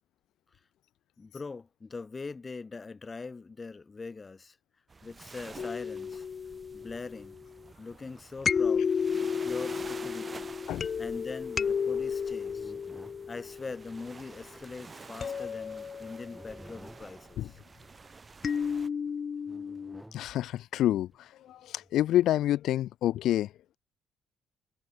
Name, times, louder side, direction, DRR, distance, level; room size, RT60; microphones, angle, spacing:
voice 1, 1.2-4.6 5.0-6.3 6.7-7.4 7.8-8.9 9.4-10.5 11.0-12.7 13.3-17.6, left 4 dB, 30° left, 2.6 m, -42 dB
sound 1, 4.9-18.9, right 4 dB, 30° right, 2.4 m, -49 dB
sound 2, 5.6-7.5 8.4-14.2 15.2-16.6 18.4-20.0, left 6 dB, 45° left, 2.9 m, -32 dB
sound 3, 12.5-13.2 15.0-15.2 16.2-17.2 17.8-18.4 19.5-20.2 21.1-21.9, right 1 dB, 5° right, 4.6 m, -52 dB
voice 2, 20.1-23.5, left 13 dB, 80° left, 0.8 m, -28 dB
cardioid pair, 90°, 0 cm